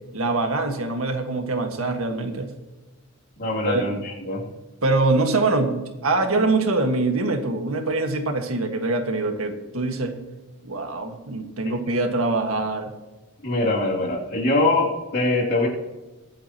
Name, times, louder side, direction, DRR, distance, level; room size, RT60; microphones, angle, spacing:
voice 1, 0.1-2.5 3.6-3.8 4.8-10.2 10.6-12.9, right 2 dB, 85° right, 4 dB, 1.7 m, -24 dB
voice 2, 3.4-4.5 13.4-15.7, left 2 dB, 50° left, -3 dB, 2.9 m, -23 dB
22.5 x 8.6 x 3.0 m, 1.1 s
head